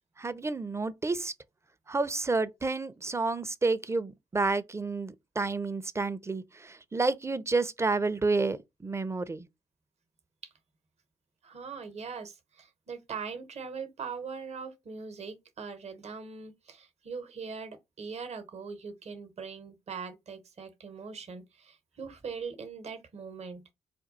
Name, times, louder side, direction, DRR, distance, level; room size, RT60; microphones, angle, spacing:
voice 1, 0.2-1.3 1.9-9.5, right 3 dB, 20° right, 0.6 m, -30 dB
voice 2, 11.4-23.6, right 5 dB, 50° right, 1.0 m, -41 dB
4.4 x 2.3 x 3.9 m
hypercardioid pair, 40°, 14 cm